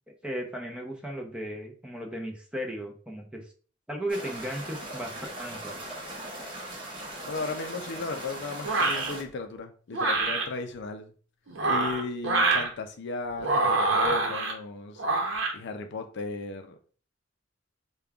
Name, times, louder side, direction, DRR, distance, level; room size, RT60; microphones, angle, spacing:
voice 1, 0.2-3.5 3.9-5.7, right 1 dB, 5° right, 1 dB, 0.6 m, -36 dB
sound 1, 4.1-9.2, right 1 dB, 25° right, 0.9 m, -39 dB
voice 2, 7.2-11.1 11.6-15.0 15.5-16.8, left 3 dB, 60° left, 6 dB, 0.5 m, -36 dB
sound 2, 8.6-9.1 9.9-10.5 11.5-12.7 13.4-14.5 15.0-15.5, right 3 dB, 70° right, 0.8 m, -25 dB
5.0 x 2.3 x 2.3 m, 0.41 s
head